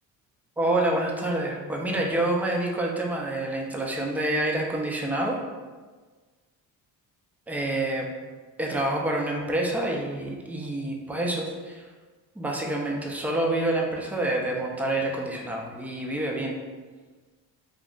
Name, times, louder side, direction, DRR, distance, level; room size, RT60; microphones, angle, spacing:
voice 1, 0.6-5.4 7.5-8.1 8.6-11.8 12.4-16.6, right 1 dB, 5° right, -1 dB, 0.3 m, -27 dB
2.4 x 2.0 x 3.7 m, 1.4 s
supercardioid pair, 65°, 47 cm